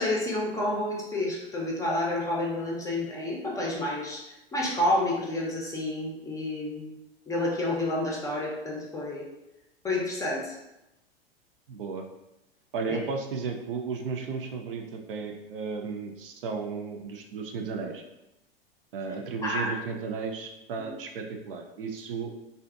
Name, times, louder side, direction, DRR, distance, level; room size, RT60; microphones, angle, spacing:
voice 1, 0.0-7.0 7.3-9.3 9.8-10.6 12.9-13.0 19.4-19.8 20.8-20.9, left 1 dB, 10° left, -3 dB, 0.5 m, -29 dB
voice 2, 11.7-12.1 12.7-18.0 18.9-22.3, right 5 dB, 65° right, 3 dB, 0.5 m, -34 dB
2.5 x 2.4 x 2.4 m, 0.93 s
figure-of-eight pair, 95°, 30 cm